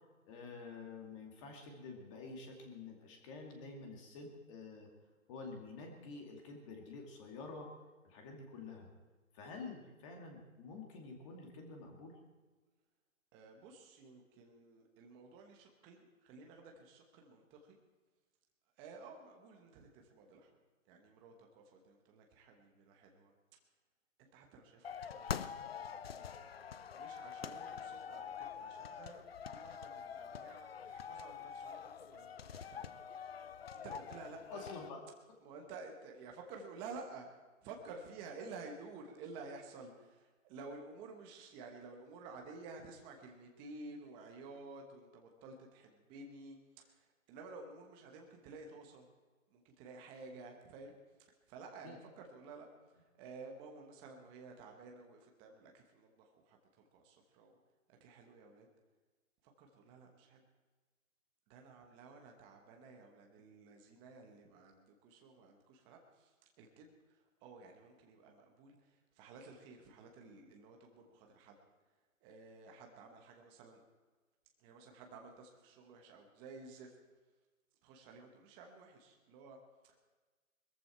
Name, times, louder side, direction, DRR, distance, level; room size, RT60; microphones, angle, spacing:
voice 1, 0.2-4.9 5.3-7.7 8.0-8.9 9.3-12.2 34.5-35.0 51.8-52.0, left 4 dB, 20° left, 2 dB, 2.5 m, -49 dB
voice 2, 13.3-17.8 18.8-20.6 20.9-23.3 24.2-26.2 26.9-32.9 33.7-34.7 35.4-37.3 37.6-49.1 49.5-51.0 51.5-57.6 58.0-58.7 59.4-60.4 61.5-71.6 72.2-73.8 74.6-77.0 77.8-80.0, right 3 dB, 10° right, 2 dB, 1.1 m, -53 dB
sound 1, 24.8-34.9, left 7 dB, 45° left, 0.6 m, -45 dB
21.5 x 14.0 x 4.5 m, 1.3 s
hypercardioid pair, 155°, 41 cm